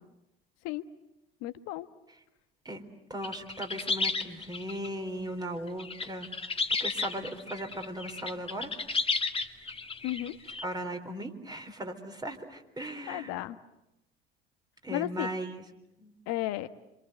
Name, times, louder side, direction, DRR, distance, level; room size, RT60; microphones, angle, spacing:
voice 1, 1.4-1.9 10.0-10.4 12.8-13.6 14.9-15.4 16.3-16.7, left 15 dB, 60° left, 12 dB, 1.3 m, -34 dB
voice 2, 3.1-6.3 6.8-8.7 10.6-13.3 14.8-15.6 16.0-16.1, right 1 dB, 15° right, 5 dB, 3.9 m, -37 dB
sound 1, 3.2-4.9 5.8-10.6, left 4 dB, 20° left, 2.0 m, -32 dB
26.5 x 26.5 x 8.0 m, 0.91 s
hypercardioid pair, 70°, 29 cm